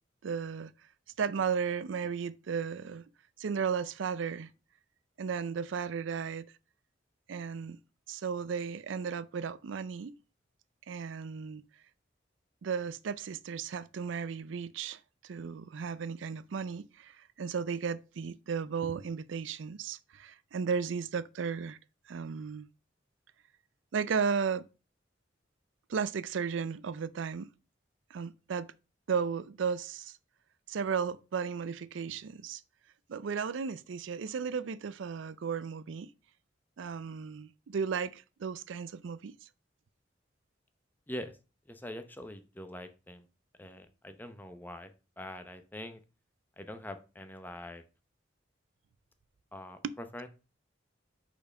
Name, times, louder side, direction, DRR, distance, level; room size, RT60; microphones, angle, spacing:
voice 1, 0.2-0.7 1.2-3.0 3.4-4.5 5.2-6.5 7.3-7.8 8.1-10.2 10.9-11.6 12.6-21.8 22.1-22.7 23.9-24.7 25.9-27.5 28.1-28.7 29.1-30.2 30.7-32.6 33.1-36.1 36.8-39.5 49.8-49.9, right 6 dB, 80° right, 0.4 m, -35 dB
voice 2, 41.1-41.4 41.7-43.2 43.6-46.0 46.6-47.8 49.5-50.3, left 1 dB, 10° left, 0.7 m, -44 dB
5.6 x 4.4 x 5.3 m
head